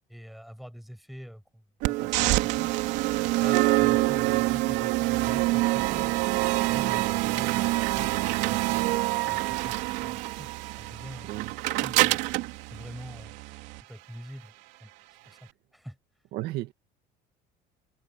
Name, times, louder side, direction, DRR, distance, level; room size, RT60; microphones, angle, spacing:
voice 1, 0.1-2.7 3.2-6.3 6.7-11.3 11.7-12.2 12.7-13.4 13.9-14.5 14.8-14.9 15.2-16.0, equal, ahead, 6.7 m, -45 dB
sound 1, 1.8-13.8, right 19 dB, 80° right, 2.8 m, -26 dB
voice 2, 16.3-16.7, right 16 dB, 60° right, 1.8 m, -35 dB
cardioid pair, 165°, 18 cm